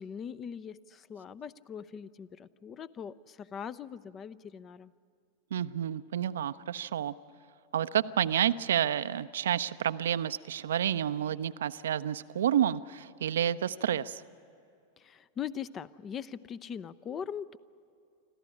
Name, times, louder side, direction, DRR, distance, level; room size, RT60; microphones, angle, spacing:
voice 1, 0.0-4.9 15.0-17.6, left 8 dB, 25° left, 19 dB, 0.5 m, -41 dB
voice 2, 5.5-7.1 7.7-14.2, right 10 dB, 60° right, 14 dB, 0.5 m, -29 dB
25.5 x 14.5 x 9.9 m, 2.5 s
figure-of-eight pair, 90°, 0 cm